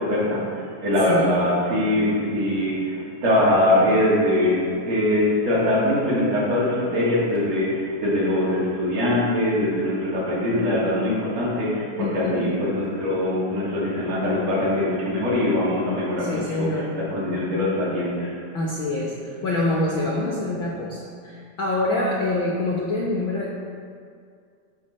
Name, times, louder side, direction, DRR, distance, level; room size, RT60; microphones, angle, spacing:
voice 1, 0.0-18.4, left 1 dB, 55° right, -7 dB, 3.5 m, -22 dB
voice 2, 12.0-12.5 16.2-16.9 18.5-23.5, left 2 dB, 90° left, -3 dB, 1.0 m, -26 dB
11.5 x 6.9 x 4.2 m, 2.2 s
omnidirectional pair, 3.7 m